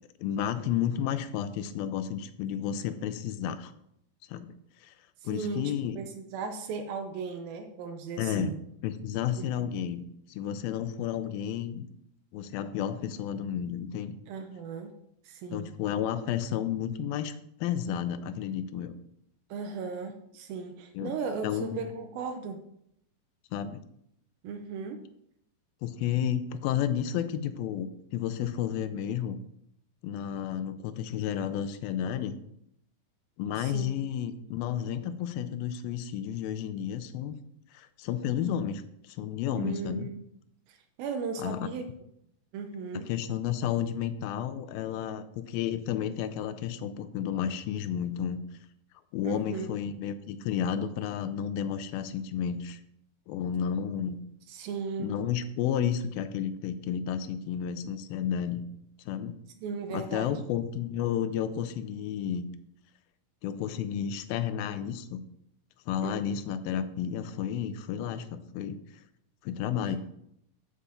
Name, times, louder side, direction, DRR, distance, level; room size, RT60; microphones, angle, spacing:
voice 1, 0.2-3.7 4.3-4.5 4.8-4.9 5.2-6.0 8.2-8.5 8.8-11.9 12.3-14.2 15.5-17.3 17.6-19.0 20.9-21.1 21.4-21.8 23.5-23.8 25.8-29.4 30.0-32.4 33.4-37.3 37.7-40.1 41.4-41.7 42.9-48.4 49.1-52.8 53.3-54.2 55.0-58.7 59.1-59.4 59.9-62.5 63.4-65.2 65.9-68.8 69.4-70.0, left 9 dB, 90° left, 12 dB, 2.5 m, -32 dB
voice 2, 5.2-5.6 6.0-8.5 9.4-9.7 14.3-15.0 15.2-15.7 19.5-22.6 24.4-25.0 33.6-34.0 39.5-40.2 40.7-41.9 42.5-43.1 49.2-49.7 54.5-55.1 59.6-60.4 66.0-66.3 69.8-70.0, right 5 dB, 85° right, 5 dB, 2.5 m, -36 dB
7.8 x 4.9 x 6.7 m, 0.75 s
omnidirectional pair, 4.1 m